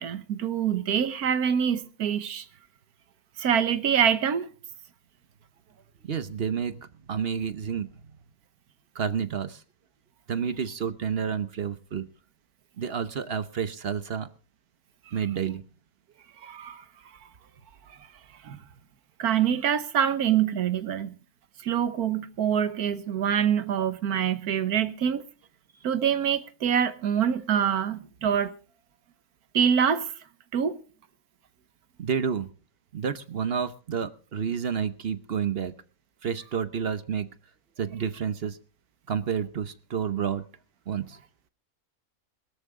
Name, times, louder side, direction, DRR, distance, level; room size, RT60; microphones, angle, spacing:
voice 1, 0.0-2.5 3.4-4.5 16.4-16.8 17.9-18.0 18.4-18.6 19.2-21.2 21.6-25.3 25.8-28.5 29.5-30.1 30.5-30.8, right 8 dB, 85° right, 1.6 m, -25 dB
voice 2, 6.0-7.9 8.9-9.6 10.3-12.1 12.8-14.3 15.1-15.6 32.0-32.5 32.9-35.7 36.2-37.3 37.8-38.6 39.1-40.4 40.9-41.2, right 7 dB, 50° right, 0.9 m, -30 dB
21.0 x 13.0 x 3.7 m
omnidirectional pair, 1.6 m